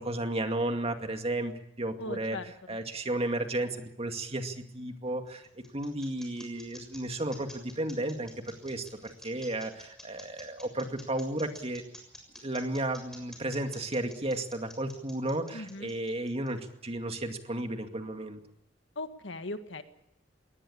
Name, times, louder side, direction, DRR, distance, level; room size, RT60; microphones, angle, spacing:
voice 1, 0.0-2.4 2.7-11.9 12.4-18.4, right 1 dB, 30° right, 5 dB, 2.3 m, -33 dB
voice 2, 2.0-2.8 15.5-15.9 18.9-19.8, left 2 dB, 70° left, 8 dB, 1.8 m, -39 dB
sound 1, 5.0-16.9, left 1 dB, ahead, 6.8 m, -50 dB
22.5 x 18.5 x 8.7 m, 0.81 s
head